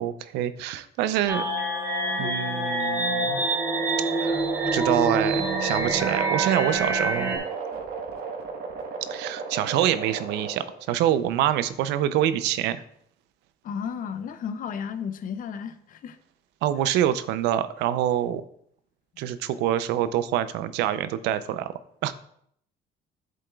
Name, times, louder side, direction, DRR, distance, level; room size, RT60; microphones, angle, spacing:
voice 1, 0.0-1.4 2.2-3.4 4.2-4.4 4.7-7.3 9.1-12.8 16.6-18.4 19.2-21.7 22.0-22.1, right 11 dB, 90° right, 13 dB, 0.5 m, -26 dB
sound 1, 1.3-7.4, right 2 dB, 10° right, 2.9 m, -26 dB
sound 2, 2.9-10.9, right 5 dB, 70° right, 1.3 m, -33 dB
voice 2, 13.6-16.2, left 7 dB, 55° left, 11 dB, 0.7 m, -33 dB
7.7 x 7.6 x 2.3 m, 0.67 s
cardioid pair, 110°, 17 cm